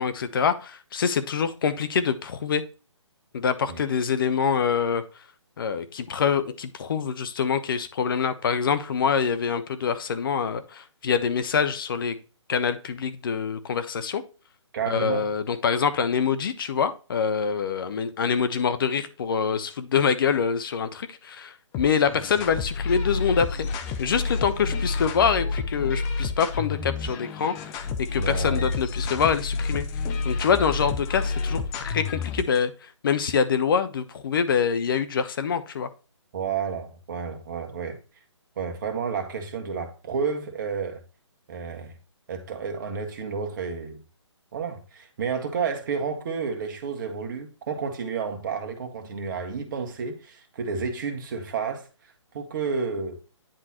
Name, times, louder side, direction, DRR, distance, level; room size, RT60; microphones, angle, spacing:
voice 1, 0.0-2.6 3.3-5.0 5.6-12.2 12.5-14.2 14.9-23.7 24.0-29.9 30.2-35.9, left 6 dB, 45° left, 0.9 m, -25 dB
voice 2, 14.7-15.3 28.2-28.8 36.3-38.0 38.6-41.0 41.5-41.9 42.3-44.0 44.5-51.8 52.3-53.2, right 5 dB, 40° right, 1.6 m, -31 dB
sound 1, 21.7-32.6, left 4 dB, 15° left, 0.4 m, -29 dB
10.0 x 3.8 x 2.9 m
figure-of-eight pair, 150°, 16 cm